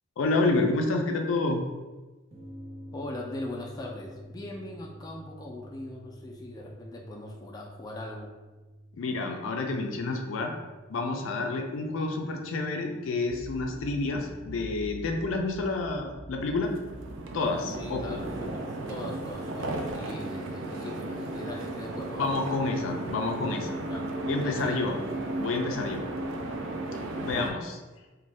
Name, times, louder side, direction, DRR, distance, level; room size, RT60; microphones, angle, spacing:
voice 1, 0.2-1.6 8.9-10.5 10.9-16.7 17.3-18.2 22.2-23.7 24.3-25.0 25.4-26.0 27.2-27.8, left 3 dB, 90° left, 3 dB, 0.4 m, -29 dB
sound 1, 2.3-15.2, equal, 30° right, 0.6 m, -50 dB
voice 2, 2.9-8.3 17.7-22.3 23.9-24.1 24.4-24.8, left 1 dB, 20° left, -1 dB, 0.3 m, -40 dB
sound 2, 13.2-20.0, right 1 dB, 55° right, 1.0 m, -45 dB
sound 3, 16.5-27.5, right 2 dB, 80° right, 0.4 m, -35 dB
2.5 x 2.1 x 3.1 m, 1.2 s
head